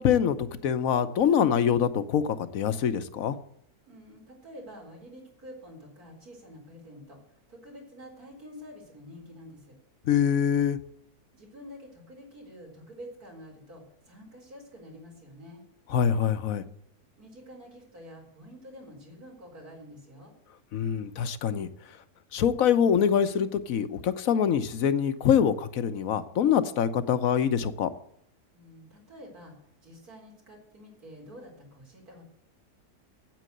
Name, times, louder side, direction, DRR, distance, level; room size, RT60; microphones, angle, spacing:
voice 1, 0.0-3.4 10.1-10.8 15.9-16.6 20.7-21.7 22.3-27.9, left 8 dB, 70° left, 12 dB, 1.2 m, -24 dB
voice 2, 3.9-7.2 7.5-9.8 11.3-15.6 17.2-20.3 28.5-29.6 29.8-32.2, equal, 80° right, 0 dB, 4.7 m, -48 dB
9.2 x 8.7 x 7.8 m, 0.72 s
omnidirectional pair, 1.6 m